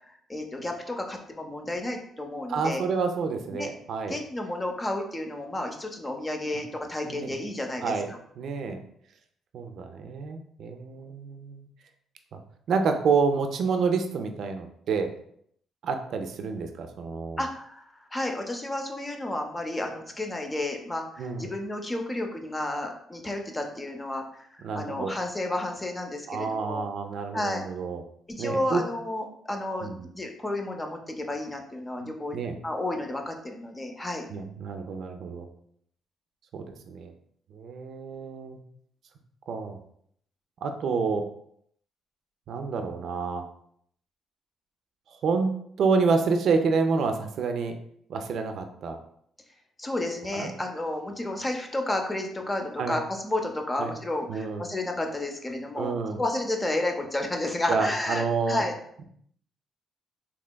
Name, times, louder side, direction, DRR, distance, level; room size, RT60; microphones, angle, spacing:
voice 1, 0.1-2.8 3.5-3.7 4.1-8.2 17.4-26.9 27.3-27.6 28.3-29.9 30.2-32.4 32.6-34.3 49.8-58.7, left 1 dB, 20° left, 3 dB, 0.5 m, -31 dB
voice 2, 2.5-4.2 7.1-7.4 7.8-8.1 8.4-8.8 9.5-11.7 12.3-12.4 12.7-15.1 15.8-17.4 21.2-21.5 24.6-25.1 26.3-28.0 28.4-28.8 29.8-30.1 32.3-32.6 34.3-35.5 36.5-37.1 37.5-38.6 39.5-39.8 40.6-41.3 42.5-43.4 45.2-45.5 45.8-47.8 48.1-49.0 50.3-50.5 52.8-52.9 53.8-53.9 54.3-54.7 55.8-56.2 57.7-58.6, right 5 dB, 70° right, 6 dB, 0.4 m, -28 dB
3.3 x 2.9 x 2.2 m, 0.67 s
cardioid pair, 90°, 0 cm